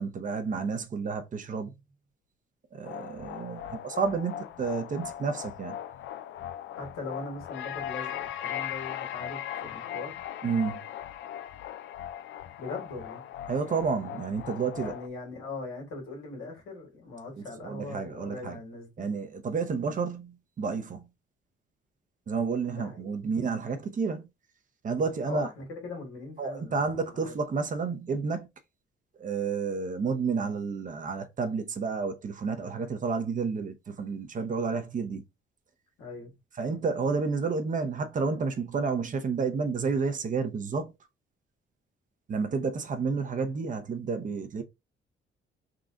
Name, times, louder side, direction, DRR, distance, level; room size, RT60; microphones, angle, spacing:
voice 1, 0.0-1.7 2.7-5.8 10.4-10.8 13.5-14.9 17.6-18.6 19.0-21.1 22.3-24.3 24.8-25.5 26.4-28.5 29.2-35.2 36.6-40.9 42.3-44.6, right 5 dB, 40° right, 0.8 m, -30 dB
sound 1, 2.8-15.1, left 11 dB, 70° left, 0.5 m, -39 dB
voice 2, 6.8-10.2 12.6-13.2 14.7-19.1 22.7-23.1 25.2-27.3 36.0-36.3, left 3 dB, 90° left, 1.8 m, -40 dB
3.8 x 2.3 x 3.8 m
cardioid pair, 90°, 20 cm